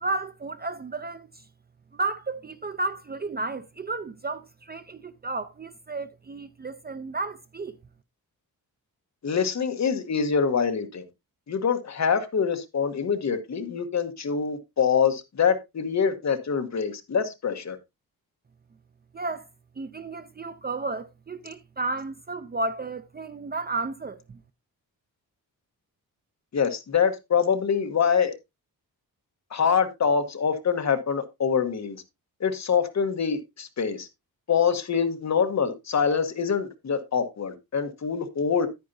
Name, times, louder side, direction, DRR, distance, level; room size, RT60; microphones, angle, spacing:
voice 1, 0.0-1.3 1.9-7.8 19.1-19.5 19.8-24.4, right 3 dB, 25° right, 0.5 m, -32 dB
voice 2, 9.2-11.0 11.5-17.8 26.5-28.3 29.5-32.0 32.4-34.1 34.5-38.7, left 6 dB, 45° left, 1.3 m, -25 dB
10.0 x 9.4 x 2.7 m
wide cardioid pair, 170°, 37 cm